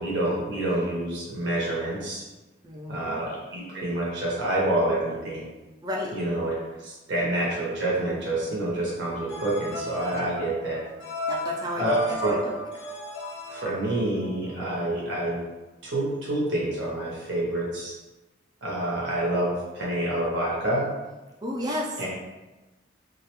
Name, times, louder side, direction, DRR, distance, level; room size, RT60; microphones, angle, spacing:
voice 1, 0.0-2.2 2.9-5.5 6.1-6.6 6.9-10.8 11.8-12.3 13.5-15.4 15.8-17.9 18.6-20.8 22.0-22.1, right 1 dB, 70° right, -6 dB, 0.6 m, -27 dB
voice 2, 2.6-3.2 5.8-6.2 11.3-12.6 21.4-22.0, left 1 dB, 20° right, -2 dB, 0.3 m, -32 dB
sound 1, 9.1-14.5, equal, 80° left, 0.6 m, -33 dB
2.3 x 2.1 x 2.8 m, 1.1 s
head